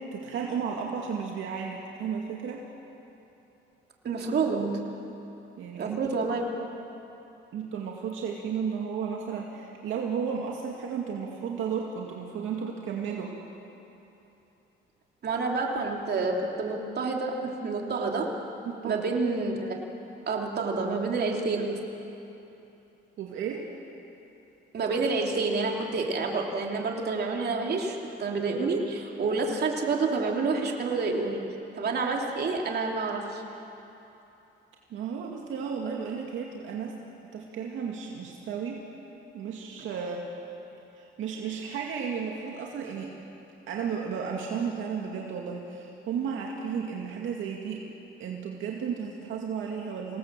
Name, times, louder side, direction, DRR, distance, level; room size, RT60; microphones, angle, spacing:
voice 1, 0.0-2.7 5.6-6.1 7.5-13.3 18.7-19.1 23.2-23.7 34.9-36.9 37.3-38.8 39.3-40.3 41.0-43.1 43.7-47.8 48.2-50.2, right 6 dB, 80° right, -1 dB, 2.3 m, -33 dB
voice 2, 4.0-5.1 5.8-6.4 15.2-18.3 18.8-19.8 20.3-21.9 24.7-31.4 31.7-33.4, right 4 dB, 55° right, 0 dB, 3.2 m, -28 dB
26.5 x 18.5 x 7.6 m, 2.9 s
cardioid pair, 90°, 20 cm